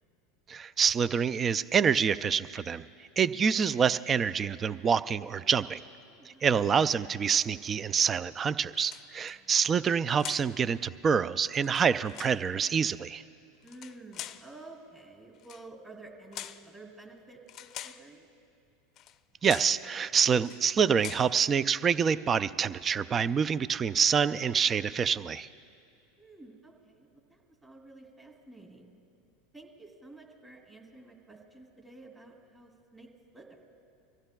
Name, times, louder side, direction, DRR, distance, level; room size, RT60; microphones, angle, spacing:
voice 1, 0.5-2.8 3.2-5.8 6.4-13.2 19.4-25.5, right 6 dB, 30° right, 16 dB, 0.3 m, -26 dB
voice 2, 3.2-3.6 6.1-6.5 9.2-9.5 13.6-18.3 26.2-28.9 29.5-33.6, right 2 dB, 15° right, 1 dB, 2.7 m, -51 dB
sound 1, 8.8-9.4 10.2-10.6 11.5-12.4 13.6-14.5 15.4-15.7 16.3-16.7 17.5-18.1 19.0-19.2 19.4-19.8 20.4-20.7 21.0-21.3, left 12 dB, 45° left, 0.5 m, -43 dB
25.5 x 15.5 x 2.3 m, 2.6 s
hypercardioid pair, 95°, 0 cm